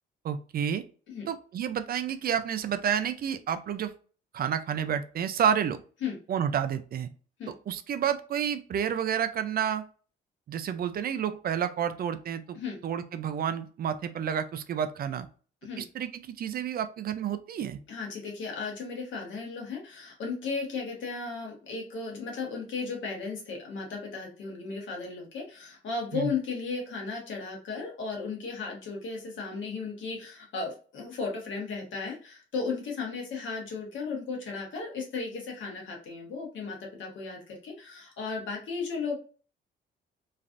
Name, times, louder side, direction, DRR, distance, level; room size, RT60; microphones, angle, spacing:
voice 1, 0.2-0.8 1.3-3.9 4.3-5.8 6.3-7.1 7.5-9.8 10.5-12.6 12.8-15.3 15.8-17.8 26.1-26.3, right 8 dB, 50° right, 10 dB, 0.4 m, -30 dB
voice 2, 17.9-39.2, left 4 dB, 70° left, -1 dB, 1.3 m, -35 dB
3.1 x 2.4 x 2.5 m, 0.39 s
cardioid pair, 90°, 20 cm